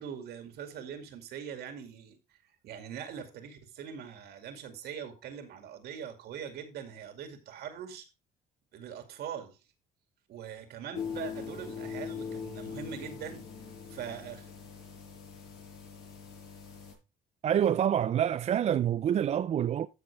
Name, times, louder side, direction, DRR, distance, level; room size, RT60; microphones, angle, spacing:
voice 1, 0.0-2.2 2.6-8.1 8.7-9.6 10.3-13.5 13.9-14.5, right 8 dB, 70° right, 2.3 m, -42 dB
sound 1, 10.9-16.9, left 6 dB, 90° left, 5.6 m, -41 dB
voice 2, 17.4-19.9, right 9 dB, 40° right, 0.4 m, -27 dB
14.0 x 6.1 x 3.4 m
cardioid pair, 110°, 17 cm